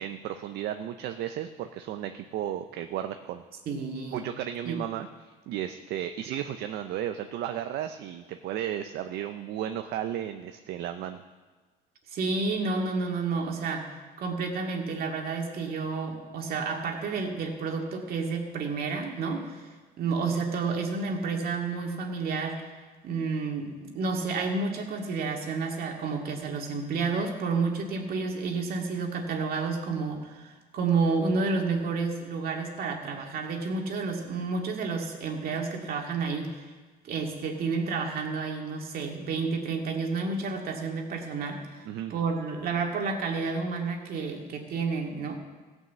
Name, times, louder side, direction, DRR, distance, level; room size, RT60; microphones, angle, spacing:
voice 1, 0.0-3.4 4.1-11.2 41.9-42.1, right 11 dB, 80° right, 7 dB, 0.6 m, -34 dB
voice 2, 3.7-4.2 4.7-4.8 12.1-13.9 14.2-19.6 20.0-22.6 23.0-36.6 37.0-41.8 42.1-45.4, right 4 dB, 60° right, 1 dB, 2.2 m, -30 dB
16.0 x 6.3 x 7.4 m, 1.3 s
cardioid pair, 110°, 17 cm